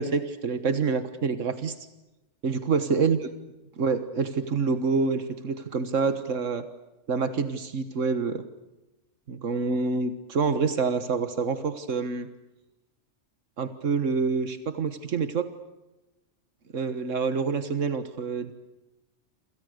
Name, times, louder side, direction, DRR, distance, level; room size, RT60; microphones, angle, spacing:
voice 1, 0.0-1.8 2.4-3.2 3.8-6.7 7.1-8.5 9.3-12.3 13.6-15.5 16.7-18.5, right 4 dB, 90° right, 11 dB, 1.8 m, -27 dB
28.5 x 26.5 x 6.6 m, 0.98 s
omnidirectional pair, 1.3 m